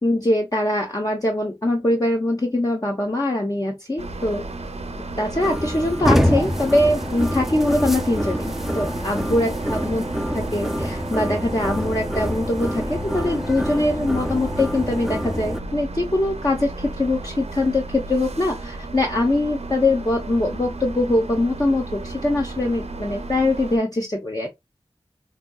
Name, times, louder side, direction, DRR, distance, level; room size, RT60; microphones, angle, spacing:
voice 1, 0.0-4.4 5.2-10.0 10.3-24.5, left 1 dB, 35° left, 0.9 m, -22 dB
sound 1, 4.0-23.8, right 2 dB, 75° right, 0.7 m, -34 dB
sound 2, 5.4-15.6, equal, 5° right, 0.5 m, -26 dB
5.1 x 2.7 x 2.3 m
wide cardioid pair, 45°, 11 cm